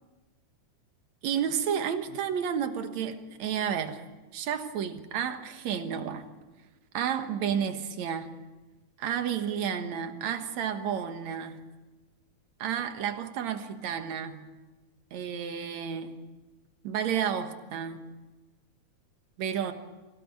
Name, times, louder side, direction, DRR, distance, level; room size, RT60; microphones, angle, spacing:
voice 1, 1.2-4.1 4.3-6.3 6.9-8.4 9.0-11.6 12.6-14.5 15.1-16.3 16.8-18.1 19.4-19.7, right 8 dB, 70° right, 2.6 m, -31 dB
25.0 x 16.5 x 8.6 m
omnidirectional pair, 3.4 m